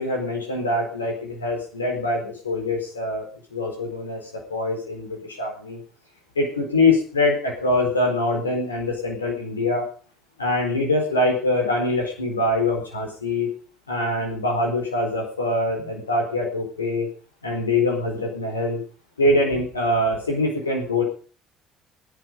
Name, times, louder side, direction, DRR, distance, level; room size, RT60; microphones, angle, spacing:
voice 1, 0.0-3.3 3.5-5.8 6.4-9.8 10.4-13.5 13.9-17.1 17.4-18.8 19.2-21.0, left 2 dB, 90° left, 2 dB, 4.3 m, -24 dB
18.0 x 11.0 x 5.3 m, 0.40 s
hypercardioid pair, 55°, 0 cm